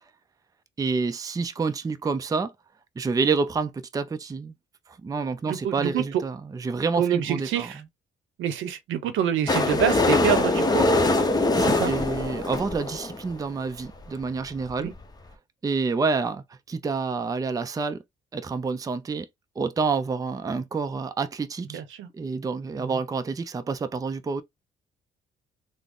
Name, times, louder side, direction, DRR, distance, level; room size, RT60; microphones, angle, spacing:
voice 1, 0.8-2.5 3.0-4.6 4.9-7.9 11.3-14.9 15.6-18.0 18.3-19.3 19.6-21.8 22.1-24.4, right 4 dB, 20° right, 0.4 m, -28 dB
voice 2, 5.4-6.2 7.0-7.8 8.4-10.9 11.7-11.9 14.8-14.9 21.7-22.1 22.8-23.0, right 9 dB, 80° right, 0.7 m, -26 dB
sound 1, 9.5-13.3 14.0-14.1 14.3-14.4 14.6-14.7 15.0-15.1, left 2 dB, 20° left, 0.7 m, -23 dB
3.6 x 2.0 x 3.5 m
cardioid pair, 90°, 20 cm